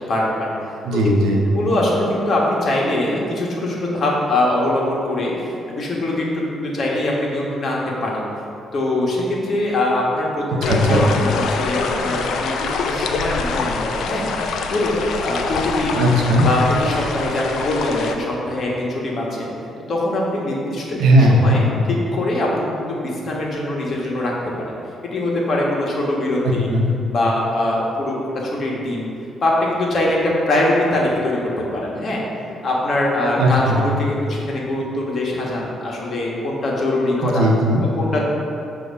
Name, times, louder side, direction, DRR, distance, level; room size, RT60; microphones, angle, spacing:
voice 1, 0.1-0.5 0.9-1.1 1.4-8.3 8.7-14.2 14.7-16.0 16.4-19.5 19.9-21.0 21.3-24.7 25.1-26.7 27.1-29.1 29.4-32.2 32.6-37.5 37.9-38.2, left 1 dB, 50° left, -3 dB, 1.3 m, -22 dB
voice 2, 0.8-1.5 10.7-11.1 16.0-16.5 21.0-21.6 26.4-26.9 33.4-33.8 37.2-37.8, equal, 85° right, 0 dB, 0.8 m, -16 dB
sound 1, 10.6-18.1, left 4 dB, 75° left, 0.4 m, -25 dB
6.6 x 2.9 x 5.5 m, 2.7 s
cardioid pair, 90°, 0 cm